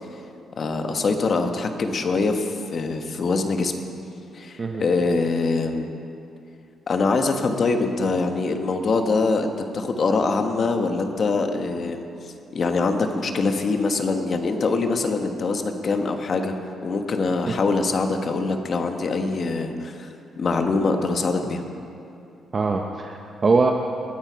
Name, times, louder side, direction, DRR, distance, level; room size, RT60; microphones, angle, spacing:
voice 1, 0.6-3.7 4.3-5.9 6.9-12.1 12.5-16.5 16.8-20.1 20.3-21.6, left 3 dB, 40° left, 6 dB, 1.1 m, -23 dB
voice 2, 22.5-23.7, right 4 dB, 30° right, 3 dB, 0.6 m, -22 dB
20.5 x 8.9 x 5.1 m, 2.6 s
cardioid pair, 140°, 0 cm